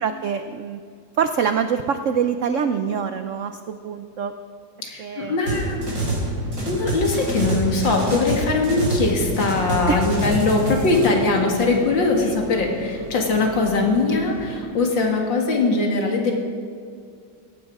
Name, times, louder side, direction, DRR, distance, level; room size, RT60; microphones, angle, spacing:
voice 1, 0.0-0.8 1.2-4.3 5.0-5.4 9.9-10.0 12.2-12.4, right 7 dB, 75° right, 9 dB, 0.7 m, -25 dB
voice 2, 4.8-5.8 6.7-16.3, left 3 dB, 75° left, 1 dB, 2.8 m, -21 dB
sound 1, 5.4-14.6, left 1 dB, 5° right, 3.7 m, -38 dB
sound 2, 5.5-6.3 6.5-9.1 9.3-11.1, right 1 dB, 45° right, 4.5 m, -26 dB
17.5 x 16.0 x 4.8 m, 2.2 s
omnidirectional pair, 2.0 m